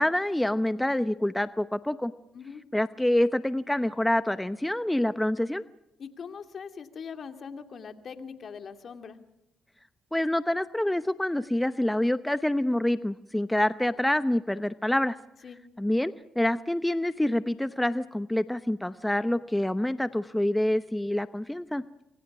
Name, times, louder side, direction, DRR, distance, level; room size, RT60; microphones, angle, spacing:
voice 1, 0.0-2.1 2.7-5.6 10.1-15.2 15.8-21.8, left 1 dB, 10° left, 12 dB, 0.8 m, -26 dB
voice 2, 2.3-2.7 6.0-9.2 15.4-15.6, left 6 dB, 55° left, 7 dB, 2.6 m, -41 dB
28.0 x 24.0 x 6.1 m, 0.88 s
cardioid pair, 70°, 0 cm